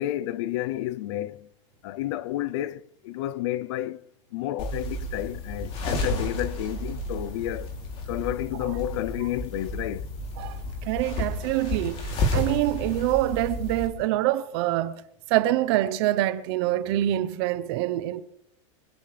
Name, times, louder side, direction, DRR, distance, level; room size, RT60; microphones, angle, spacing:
voice 1, 0.0-1.5 1.8-4.0 4.3-7.7 8.1-10.1, left 14 dB, 55° left, 0.5 m, -31 dB
sound 1, 4.6-13.9, left 1 dB, 35° left, 3.0 m, -31 dB
voice 2, 10.4-15.0 15.3-18.2, right 15 dB, 50° right, 0.9 m, -25 dB
24.5 x 15.0 x 3.3 m
supercardioid pair, 160°, 17 cm